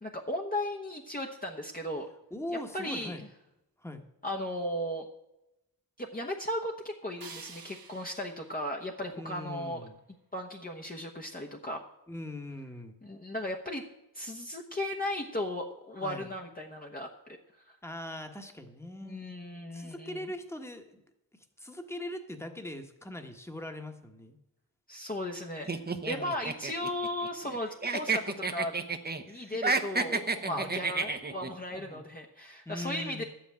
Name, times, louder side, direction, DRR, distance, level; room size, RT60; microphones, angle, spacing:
voice 1, 0.0-2.1 2.7-3.1 4.2-5.1 6.0-9.9 10.3-11.8 13.0-13.8 14.1-17.4 17.7-17.8 19.0-20.2 24.9-25.7 26.0-28.7 29.3-33.2, left 1 dB, 25° left, 0 dB, 1.1 m, -36 dB
voice 2, 2.3-3.2 3.8-4.0 9.1-10.0 12.1-13.0 16.0-16.3 17.8-19.2 19.7-21.0 21.6-24.4 26.1-26.4 30.5-30.6 31.7-32.0 32.6-33.2, left 1 dB, 5° left, 6 dB, 1.3 m, -41 dB
sound 1, 7.2-10.2, right 5 dB, 70° right, 1.2 m, -51 dB
sound 2, 25.7-27.6 27.8-29.2 29.5-31.5, right 4 dB, 25° right, 0.9 m, -30 dB
12.0 x 5.9 x 8.8 m, 0.90 s
cardioid pair, 70°, 37 cm